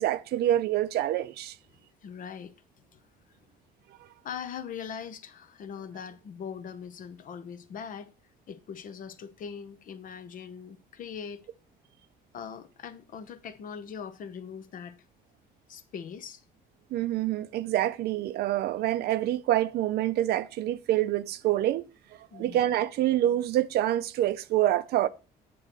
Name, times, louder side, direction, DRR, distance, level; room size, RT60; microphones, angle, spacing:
voice 1, 0.0-1.5 16.9-21.9 22.3-25.1, right 13 dB, 70° right, 0.6 m, -26 dB
voice 2, 2.0-2.5 2.9-3.0 4.2-8.1 8.5-11.4 12.3-15.0 15.7-16.4 22.3-22.6, left 7 dB, 55° left, 0.8 m, -41 dB
8.5 x 3.1 x 6.5 m
cardioid pair, 110°, 17 cm